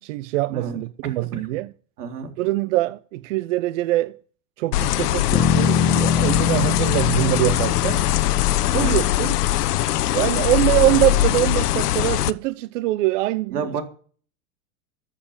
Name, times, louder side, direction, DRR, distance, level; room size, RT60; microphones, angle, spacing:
voice 1, 0.0-1.7 2.4-4.2 4.6-8.0 8.7-9.4 10.1-13.7, right 17 dB, 55° right, 0.6 m, -23 dB
voice 2, 1.0-1.5 2.0-2.3 8.7-9.0 13.5-13.8, right 5 dB, 80° right, 3.8 m, -30 dB
sound 1, 4.7-12.3, left 14 dB, 80° left, 1.0 m, -21 dB
Bass guitar, 5.3-9.7, left 7 dB, 15° left, 0.5 m, -24 dB
14.0 x 7.5 x 7.3 m
supercardioid pair, 145°, 46 cm